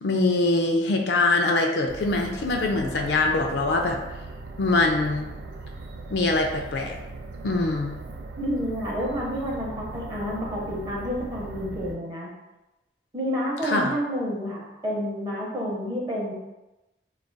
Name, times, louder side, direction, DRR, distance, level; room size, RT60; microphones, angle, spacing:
voice 1, 0.0-4.0 4.6-5.3 6.1-7.0 7.4-8.0 13.6-13.9, left 2 dB, 65° left, 3 dB, 0.4 m, -23 dB
sound 1, 1.9-11.9, right 3 dB, 70° right, 0.4 m, -39 dB
voice 2, 8.4-12.3 13.1-16.3, equal, 20° right, -4 dB, 0.7 m, -29 dB
2.4 x 2.3 x 3.8 m, 1.0 s
head